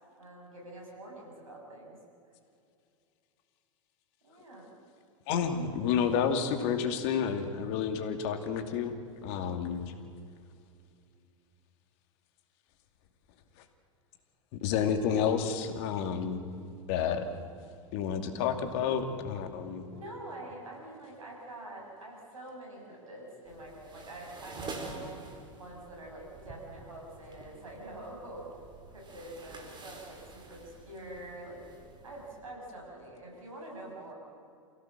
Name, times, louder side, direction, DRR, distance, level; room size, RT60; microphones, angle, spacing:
voice 1, 0.2-2.0 4.2-4.7 19.9-25.3 25.6-28.5 28.9-31.6 32.0-34.1, right 1 dB, 85° right, -1 dB, 7.5 m, -45 dB
voice 2, 5.3-9.8 14.5-16.4 16.9-17.3 17.9-19.8, left 7 dB, 55° left, 6 dB, 2.7 m, -30 dB
sound 1, 23.5-32.4, right 3 dB, 25° right, 4.5 m, -48 dB
28.5 x 16.5 x 7.6 m, 2.5 s
hypercardioid pair, 95°, 17 cm